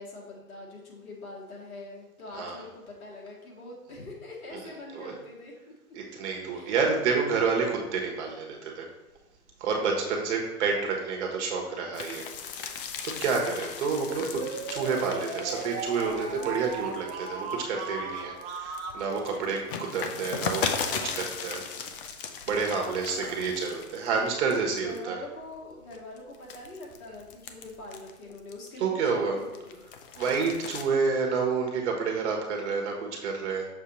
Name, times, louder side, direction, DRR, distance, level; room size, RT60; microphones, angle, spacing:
voice 1, 0.0-5.7 6.5-6.9 22.8-23.5 24.7-29.8, left 2 dB, 70° left, -3 dB, 2.1 m, -43 dB
voice 2, 5.9-8.9 9.6-12.2 13.0-21.6 22.5-25.2 28.8-29.4 30.2-33.7, right 5 dB, 50° right, 1 dB, 1.4 m, -29 dB
sound 1, 11.9-17.9 18.3-24.2 24.5-25.0 25.5-28.8 29.3-30.8, left 6 dB, 40° left, 0.5 m, -37 dB
sound 2, 14.0-19.0, right 4 dB, 30° right, 0.8 m, -36 dB
6.7 x 2.8 x 5.1 m, 1.0 s
hypercardioid pair, 130°, 44 cm